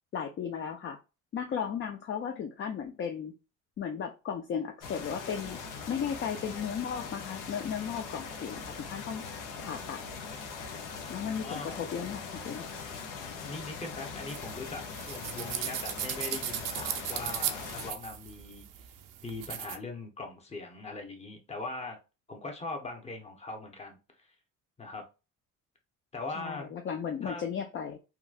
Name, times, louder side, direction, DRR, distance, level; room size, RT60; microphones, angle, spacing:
voice 1, 0.1-1.0 1.3-3.3 3.8-5.6 5.9-9.2 9.6-10.0 11.1-12.6 26.4-28.0, left 7 dB, 40° left, 5 dB, 0.4 m, -35 dB
sound 1, 4.8-17.9, left 5 dB, 75° left, 0.8 m, -41 dB
voice 2, 11.4-11.8 13.4-18.7 19.2-22.0 22.3-24.3 24.8-25.1 26.1-26.7 27.2-27.4, left 3 dB, 20° left, 2 dB, 0.9 m, -40 dB
sound 2, 14.3-19.8, right 11 dB, 80° right, 0.5 m, -37 dB
3.0 x 2.3 x 2.4 m, 0.29 s
cardioid pair, 95°, 32 cm